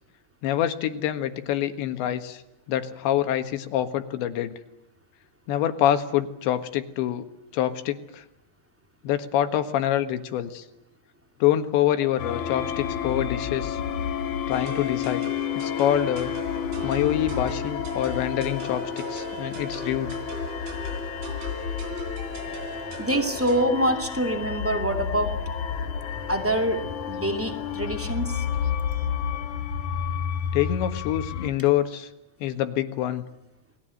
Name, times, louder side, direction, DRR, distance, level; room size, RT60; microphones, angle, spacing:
voice 1, 0.4-2.4 2.7-4.6 5.5-7.3 7.5-8.2 9.0-10.7 11.4-13.8 14.5-15.3 15.6-16.3 16.8-20.1 30.5-32.1 32.4-33.2, left 11 dB, 75° left, 9 dB, 3.8 m, -26 dB
sound 1, 12.2-31.5, left 7 dB, 60° left, 2.2 m, -31 dB
sound 2, 14.5-23.7, right 2 dB, 90° right, 5.7 m, -39 dB
voice 2, 23.0-25.4 26.3-26.8 27.0-28.4, right 1 dB, 10° right, 5 dB, 0.7 m, -25 dB
30.0 x 20.5 x 7.8 m, 0.87 s
omnidirectional pair, 5.2 m